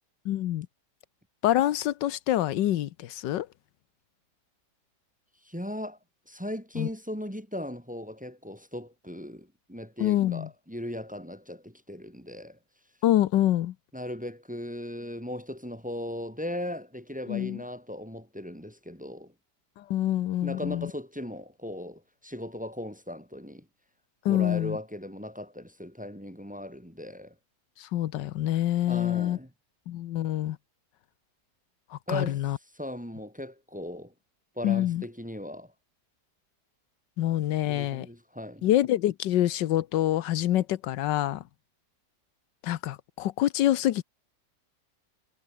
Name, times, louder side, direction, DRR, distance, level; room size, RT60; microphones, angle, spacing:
voice 1, 0.2-0.7 1.4-3.5 6.8-6.9 10.0-10.5 13.0-13.7 17.3-17.6 19.8-20.9 24.2-24.8 27.8-29.4 29.9-30.6 31.9-32.6 34.6-35.0 37.2-38.1 38.6-41.4 42.6-44.0, left 13 dB, 90° left, 1.5 m, -26 dB
voice 2, 5.5-6.0 6.3-12.6 13.9-19.3 20.4-23.7 24.3-27.3 28.8-29.5 32.1-32.4 32.8-34.1 34.6-35.7 37.7-38.6, left 1 dB, 5° right, 1.9 m, -38 dB
omnidirectional pair, 1.9 m